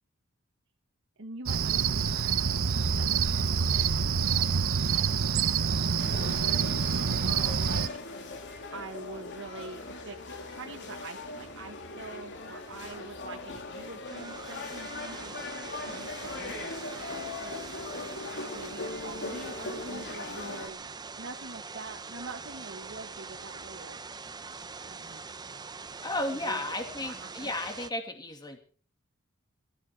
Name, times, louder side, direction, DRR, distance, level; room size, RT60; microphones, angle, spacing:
voice 1, 1.2-7.9 8.7-17.8 18.5-20.9 21.2-24.0 24.5-25.2 26.4-27.5, right 3 dB, 65° right, 1 dB, 1.6 m, -45 dB
Cricket, 1.5-7.9, right 6 dB, 80° right, 0.8 m, -27 dB
sound 1, 6.0-20.7, left 3 dB, 60° left, 3.0 m, -40 dB
sound 2, 14.0-27.9, right 4 dB, 20° right, 0.7 m, -43 dB
voice 2, 26.0-28.6, left 1 dB, 20° left, 5 dB, 2.3 m, -34 dB
20.5 x 14.0 x 4.9 m, 0.43 s
head